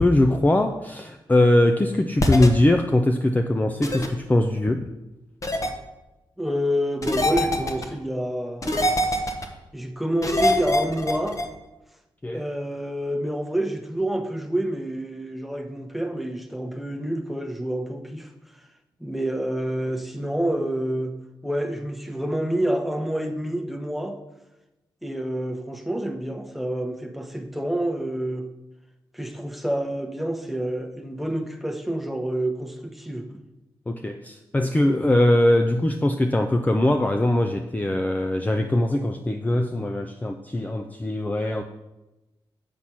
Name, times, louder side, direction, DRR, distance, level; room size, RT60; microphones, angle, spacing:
voice 1, 0.0-4.8 12.2-12.4 33.9-41.6, left 1 dB, 20° left, 0.5 m, -21 dB
sound 1, 2.2-2.5 3.8-4.1 5.4-5.7 7.0-7.8 8.6-9.5 10.2-11.4, left 1 dB, 40° left, 1.2 m, -23 dB
voice 2, 6.4-9.2 9.7-11.4 12.3-18.3 19.0-21.1 21.4-24.2 25.0-28.5 29.1-33.4, right 1 dB, ahead, 1.0 m, -28 dB
8.5 x 4.3 x 6.2 m
cardioid pair, 60°, 9 cm